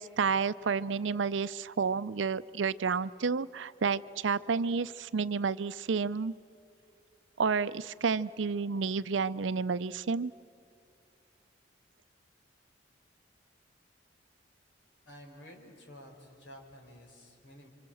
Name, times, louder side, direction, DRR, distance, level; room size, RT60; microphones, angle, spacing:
voice 1, 0.0-6.3 7.4-10.3, right 5 dB, 80° right, 16 dB, 0.5 m, -30 dB
voice 2, 15.1-17.7, equal, 75° left, 2 dB, 4.6 m, -51 dB
29.0 x 25.0 x 7.8 m, 2.7 s
head